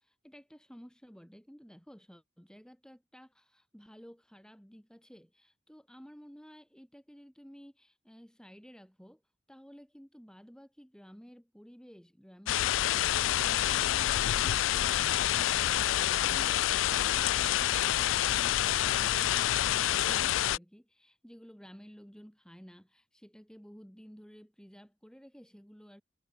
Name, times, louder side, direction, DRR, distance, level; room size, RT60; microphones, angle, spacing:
voice 1, 0.0-9.2 9.5-26.0, equal, 5° left, 3.6 m, -53 dB
sound 1, 12.5-20.6, left 12 dB, 80° left, 0.3 m, -27 dB
head